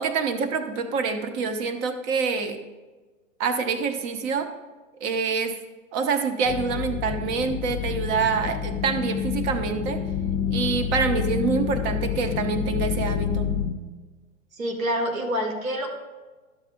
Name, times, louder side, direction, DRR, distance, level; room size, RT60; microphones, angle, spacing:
voice 1, 0.0-2.6 3.4-4.5 5.0-5.6 5.9-10.0 10.5-13.5, right 5 dB, 25° right, 7 dB, 0.8 m, -26 dB
sound 1, 6.5-13.7, left 8 dB, 30° left, 0.8 m, -28 dB
voice 2, 14.6-15.9, equal, 80° right, 1 dB, 1.9 m, -27 dB
12.0 x 7.3 x 2.5 m, 1.3 s
hypercardioid pair, 120°, 40 cm